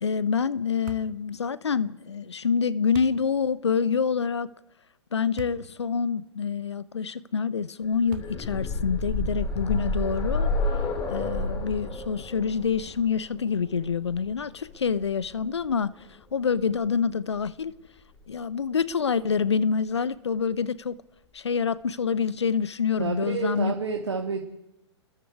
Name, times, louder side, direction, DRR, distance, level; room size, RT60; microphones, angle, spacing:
voice 1, 0.0-4.5 5.1-10.5 11.1-17.7 18.3-21.0 21.3-23.7, left 6 dB, 70° left, 0.9 m, -27 dB
sound 1, 0.9-1.2 2.9-3.2 5.4-5.7 6.3-6.4 8.1-8.6, right 10 dB, 45° right, 1.8 m, -40 dB
sound 2, 7.9-15.7 16.9-17.0 17.3-17.4, left 2 dB, 25° left, 4.7 m, -30 dB
voice 2, 23.0-24.4, right 5 dB, 70° right, 2.9 m, -29 dB
29.0 x 21.5 x 4.8 m
figure-of-eight pair, 115°, 15 cm